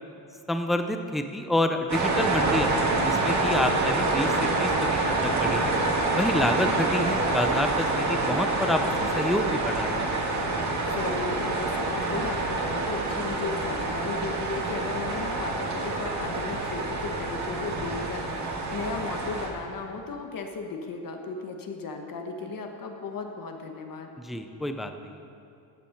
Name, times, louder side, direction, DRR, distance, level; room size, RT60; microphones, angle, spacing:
voice 1, 0.5-5.8 6.1-8.8 9.1-10.0 24.2-25.2, left 1 dB, ahead, 7 dB, 0.4 m, -28 dB
sound 1, 1.9-19.5, right 2 dB, 35° right, 2.0 m, -27 dB
voice 2, 6.4-6.9 10.8-24.1, left 4 dB, 45° left, 3 dB, 1.2 m, -36 dB
14.0 x 7.5 x 5.8 m, 2.6 s
cardioid pair, 130°, 48 cm